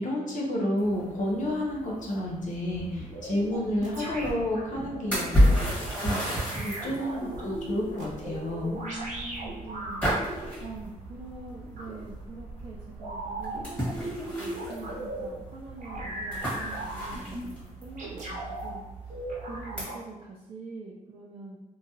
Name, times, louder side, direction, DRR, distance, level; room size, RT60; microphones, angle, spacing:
voice 1, 0.0-5.5 5.9-8.8, left 1 dB, 60° left, -3 dB, 0.6 m, -30 dB
sound 1, 0.8-19.8, equal, 10° left, 1.2 m, -33 dB
sound 2, 2.7-5.7 6.5-10.5 11.8-11.9 13.0-15.3 15.8-17.5 18.0-18.7 19.1-20.0, right 1 dB, 60° right, 0.8 m, -38 dB
voice 2, 4.9-6.0 6.5-6.8 8.7-21.6, right 3 dB, 45° right, -4 dB, 0.4 m, -44 dB
2.8 x 2.3 x 2.6 m, 1.1 s
cardioid pair, 115°, 14 cm